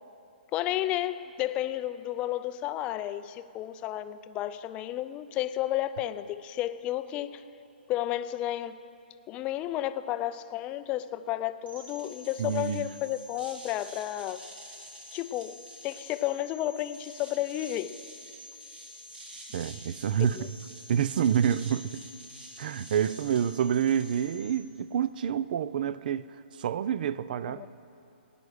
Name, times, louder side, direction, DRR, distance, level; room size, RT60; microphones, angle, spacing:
voice 1, 0.5-7.4 7.9-8.8 9.3-14.4 15.1-18.0 20.4-20.5 27.6-27.7, left 13 dB, 20° left, 0.4 m, -32 dB
sound 1, 11.7-24.5, left 1 dB, 80° right, 3.6 m, -47 dB
voice 2, 12.4-12.9 19.5-20.5 20.9-22.0 22.6-27.7, right 8 dB, 55° right, 0.5 m, -28 dB
18.0 x 9.7 x 6.5 m
hypercardioid pair, 155°, 6 cm